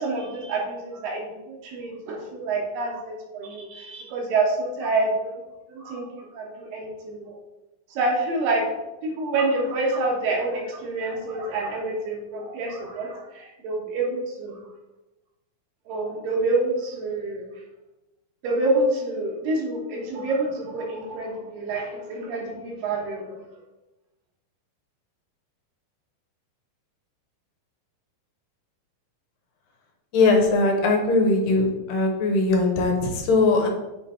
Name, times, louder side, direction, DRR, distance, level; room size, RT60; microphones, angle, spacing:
voice 1, 0.0-5.4 5.7-7.4 7.9-8.7 9.0-14.6 15.9-17.4 18.4-23.4, right 2 dB, 75° right, -1 dB, 3.0 m, -27 dB
voice 2, 30.1-33.7, left 3 dB, 75° left, 2 dB, 2.6 m, -20 dB
7.9 x 3.4 x 4.3 m, 0.99 s
omnidirectional pair, 4.1 m